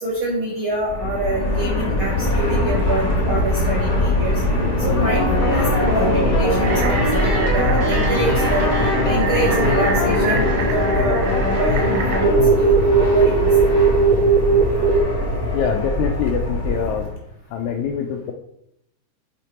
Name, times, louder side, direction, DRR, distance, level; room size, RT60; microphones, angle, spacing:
voice 1, 0.0-4.4 4.8-8.7 9.0-13.5, right 1 dB, 65° right, -4 dB, 1.3 m, -26 dB
Fixed-wing aircraft airplane, 0.7-17.1, left 1 dB, 20° left, 1.0 m, -22 dB
sound 1, 4.8-12.5, left 1 dB, 50° left, 1.0 m, -23 dB
sound 2, 6.6-15.0, right 5 dB, 85° right, 2.4 m, -21 dB
voice 2, 15.5-17.1 17.5-18.3, left 7 dB, 85° left, 4 dB, 1.6 m, -24 dB
6.8 x 4.2 x 4.4 m, 0.77 s
omnidirectional pair, 3.9 m